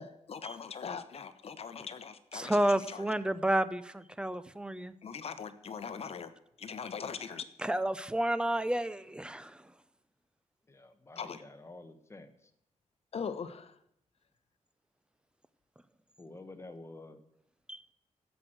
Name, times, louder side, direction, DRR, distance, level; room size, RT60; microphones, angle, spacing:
voice 1, 0.0-3.1 5.0-6.3 6.6-7.5 11.2-11.4 13.1-13.8, left 6 dB, 55° left, 11 dB, 1.0 m, -41 dB
voice 2, 2.3-4.9 7.6-9.6 17.7-17.8, right 1 dB, 10° right, 14 dB, 0.6 m, -31 dB
voice 3, 10.7-12.5 16.2-17.2, left 2 dB, 20° left, 7 dB, 1.3 m, -50 dB
15.0 x 6.2 x 7.8 m, 0.79 s
wide cardioid pair, 125°, 12 cm